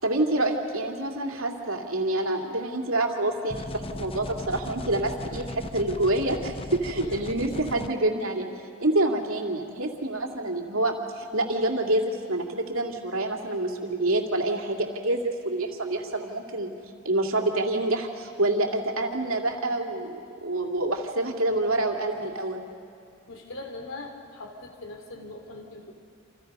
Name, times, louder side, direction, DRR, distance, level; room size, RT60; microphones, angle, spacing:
voice 1, 0.0-8.5 8.8-16.7 17.0-22.6, right 2 dB, 70° right, 3 dB, 2.6 m, -27 dB
sound 1, 3.5-7.9, left 2 dB, 25° left, 0.7 m, -37 dB
voice 2, 7.0-7.4 21.5-21.9 23.3-25.9, left 2 dB, 65° left, 4 dB, 3.3 m, -41 dB
29.0 x 27.0 x 5.5 m, 2.6 s
head